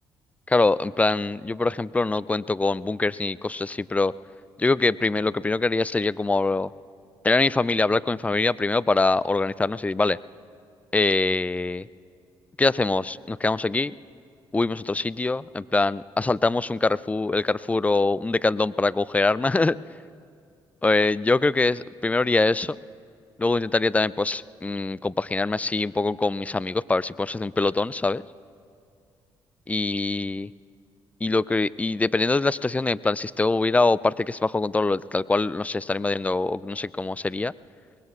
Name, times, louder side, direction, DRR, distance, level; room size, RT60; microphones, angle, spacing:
voice 1, 0.5-4.1 4.6-6.7 7.2-10.2 10.9-11.9 12.6-13.9 14.5-19.8 20.8-22.8 23.4-28.2 29.7-30.5 31.2-37.5, left 3 dB, 15° left, 20 dB, 0.3 m, -23 dB
24.0 x 20.5 x 2.4 m, 2.2 s
hypercardioid pair, 55°, 11 cm